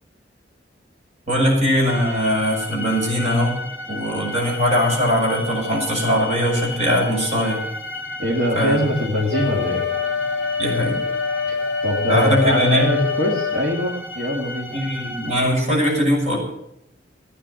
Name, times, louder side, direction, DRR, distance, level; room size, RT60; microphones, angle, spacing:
voice 1, 1.3-3.6 3.9-7.6 8.5-8.8 10.6-11.0 12.1-12.9 14.7-16.4, equal, 40° right, -1 dB, 6.2 m, -20 dB
sound 1, 1.9-15.4, left 1 dB, 10° right, 2.7 m, -33 dB
voice 2, 8.2-9.8 11.5-11.6 11.8-14.8, equal, 65° right, -3 dB, 2.5 m, -22 dB
Wind instrument woodwind instrument, 9.3-13.7, left 5 dB, 55° left, 0.9 m, -25 dB
16.0 x 9.8 x 6.4 m, 0.79 s
head